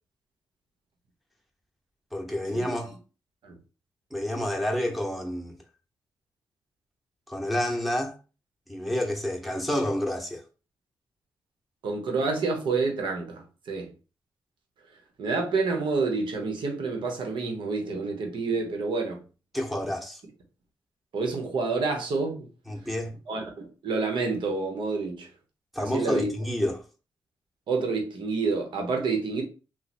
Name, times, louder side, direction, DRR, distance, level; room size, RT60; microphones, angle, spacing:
voice 1, 2.1-2.9 4.1-5.6 7.3-8.1 8.7-10.4 19.5-20.2 22.7-23.1 25.7-26.8, left 1 dB, ahead, 1.0 m, -29 dB
voice 2, 11.8-13.9 15.2-19.2 21.1-22.5 23.3-25.3 25.8-26.3 27.7-29.4, right 4 dB, 75° right, 1.0 m, -28 dB
2.9 x 2.2 x 4.2 m
supercardioid pair, 55°, 8 cm